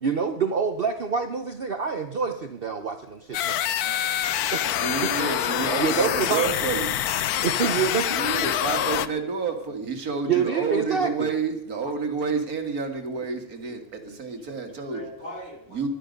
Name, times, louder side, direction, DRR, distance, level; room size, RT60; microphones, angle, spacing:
voice 1, 0.0-3.6 4.5-4.7 5.0-5.1 5.8-6.4 7.4-8.2 10.3-11.3, right 6 dB, 45° right, 7 dB, 0.9 m, -26 dB
sound 1, 3.3-9.1, left 11 dB, 90° left, 1.2 m, -26 dB
voice 2, 3.8-4.7 9.1-9.2 11.8-11.9 13.7-14.6 14.9-15.8, left 1 dB, 50° left, 0 dB, 4.0 m, -43 dB
voice 3, 4.7-7.0 8.1-15.0 15.7-15.9, right 5 dB, 80° right, 5 dB, 2.3 m, -29 dB
18.5 x 12.0 x 5.2 m, 0.82 s
omnidirectional pair, 1.5 m